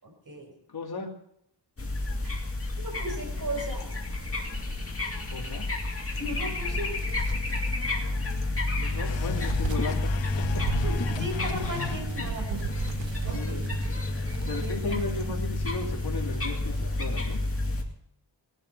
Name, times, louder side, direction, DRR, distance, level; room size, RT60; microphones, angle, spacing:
voice 1, 0.0-0.5 2.2-2.3 2.8-3.8 6.2-6.9 10.8-12.6 13.2-13.7 14.6-15.4, right 1 dB, 50° right, 2 dB, 5.2 m, -36 dB
voice 2, 0.7-1.1 5.3-5.7 8.7-10.6 13.3-13.7 14.5-17.4, left 3 dB, 55° left, 1 dB, 2.6 m, -36 dB
sound 1, 1.8-17.8, left 2 dB, 30° left, 2.3 m, -30 dB
sound 2, 5.8-15.1, right 6 dB, 90° right, 1.0 m, -39 dB
sound 3, 9.0-12.4, left 10 dB, 75° left, 0.7 m, -36 dB
19.5 x 11.5 x 5.4 m, 0.73 s
wide cardioid pair, 170°, 44 cm